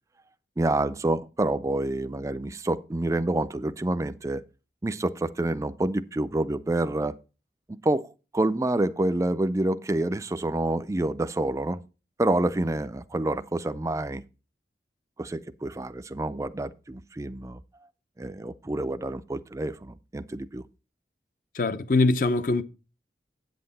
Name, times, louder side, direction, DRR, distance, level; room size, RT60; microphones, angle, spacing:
voice 1, 0.6-4.4 4.8-7.2 7.8-8.1 8.3-11.8 12.2-14.2 15.2-17.6 18.2-20.6, right 2 dB, 15° right, 0.4 m, -27 dB
voice 2, 21.6-22.6, left 3 dB, 50° left, 0.6 m, -22 dB
8.5 x 7.7 x 4.1 m
head